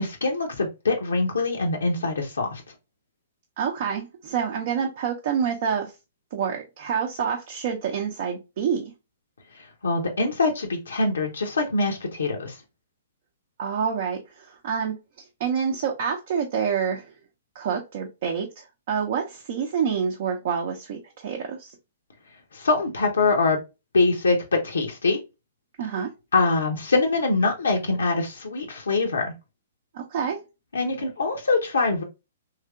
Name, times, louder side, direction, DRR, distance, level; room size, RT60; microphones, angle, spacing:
voice 1, 0.0-2.6 9.5-12.6 22.5-23.6 23.9-25.2 26.3-29.3 30.7-32.0, left 3 dB, 80° left, 0.7 m, -24 dB
voice 2, 3.6-5.9 6.3-8.9 13.6-15.0 15.4-17.1 17.5-21.7 25.8-26.1 29.9-30.4, right 7 dB, 55° right, 0.6 m, -27 dB
3.2 x 2.8 x 2.3 m
figure-of-eight pair, 120°, 0 cm